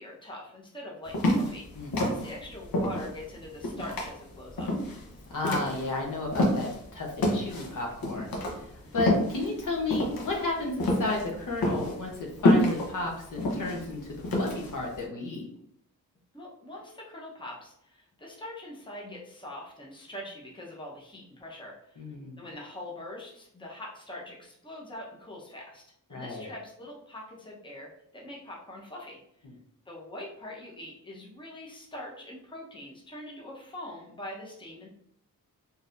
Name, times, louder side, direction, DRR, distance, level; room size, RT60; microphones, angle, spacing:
voice 1, 0.0-4.7 8.8-8.9 16.3-22.0 22.4-25.8 26.1-29.4 29.9-34.9, left 1 dB, 15° left, -3 dB, 0.8 m, -43 dB
sound 1, 1.1-6.8 7.2-14.9, left 1 dB, 90° left, 0.9 m, -28 dB
voice 2, 5.3-8.3 8.6-15.4 22.0-22.4 26.1-26.5, left 2 dB, 65° left, 0 dB, 0.9 m, -33 dB
3.9 x 2.8 x 2.5 m, 0.72 s
wide cardioid pair, 95°, 34 cm